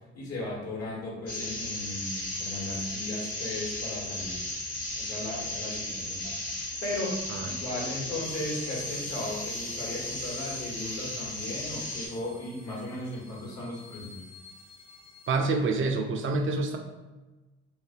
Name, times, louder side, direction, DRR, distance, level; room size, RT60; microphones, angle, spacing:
voice 1, 0.1-4.4 4.9-14.2, left 2 dB, 50° left, -4 dB, 1.1 m, -36 dB
sound 1, 1.3-12.1, left 1 dB, 70° left, 1.1 m, -35 dB
sound 2, 8.2-15.4, left 3 dB, 15° left, 0.5 m, -52 dB
voice 2, 15.3-16.8, right 3 dB, 40° right, 4 dB, 0.4 m, -27 dB
2.6 x 2.4 x 2.4 m, 1.2 s
hypercardioid pair, 45°, 32 cm